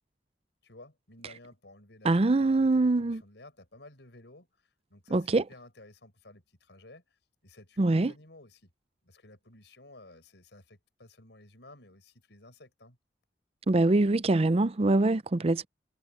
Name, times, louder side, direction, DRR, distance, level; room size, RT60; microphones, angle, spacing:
voice 1, 0.6-4.5 4.9-8.7 9.0-13.0, left 2 dB, 75° left, 6.0 m, -54 dB
voice 2, 2.0-3.2 5.1-5.4 7.8-8.1 13.7-15.7, right 2 dB, 35° right, 0.5 m, -24 dB
head